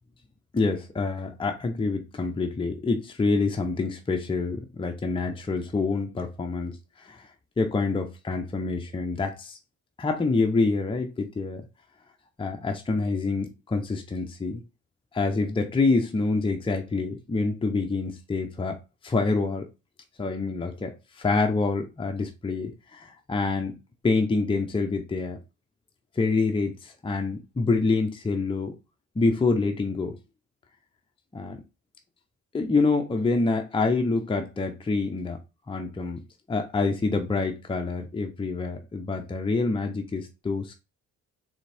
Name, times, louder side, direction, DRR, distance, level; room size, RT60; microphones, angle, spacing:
voice 1, 0.5-7.3 7.6-9.6 10.0-11.6 12.4-14.6 15.1-18.8 19.0-19.7 20.2-23.8 24.0-25.4 26.2-28.7 29.2-30.2 31.3-31.6 32.5-35.4 35.7-40.7, left 3 dB, 15° left, 0.7 m, -26 dB
3.9 x 3.4 x 3.4 m
cardioid pair, 90°, 30 cm